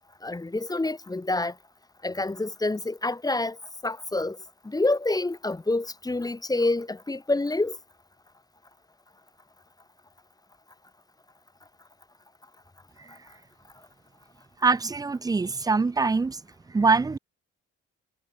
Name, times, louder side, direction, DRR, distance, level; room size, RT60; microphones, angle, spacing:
voice 1, 0.2-1.5 2.0-3.6 3.8-4.4 4.6-7.8, left 2 dB, 10° left, 0.9 m, -27 dB
voice 2, 14.6-16.4 16.7-17.2, right 4 dB, 15° right, 0.4 m, -23 dB
cardioid pair, 90°, 30 cm